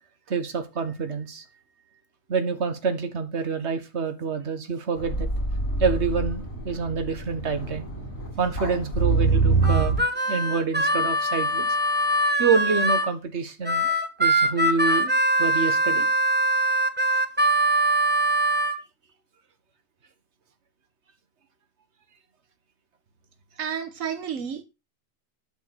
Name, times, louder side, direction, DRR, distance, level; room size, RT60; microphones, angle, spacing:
voice 1, 0.3-1.5 2.3-5.3 5.8-7.9 8.4-10.0 10.3-11.8 12.4-13.9 14.2-15.1 15.4-16.1, right 5 dB, 60° right, 1.8 m, -27 dB
sound 1, 5.0-10.0, right 3 dB, 65° left, 4.3 m, -25 dB
Harmonica, 9.6-13.1 13.6-18.8, right 1 dB, 10° right, 1.1 m, -22 dB
voice 2, 23.6-24.6, right 8 dB, 90° right, 1.4 m, -31 dB
12.0 x 4.6 x 6.3 m
omnidirectional pair, 1.3 m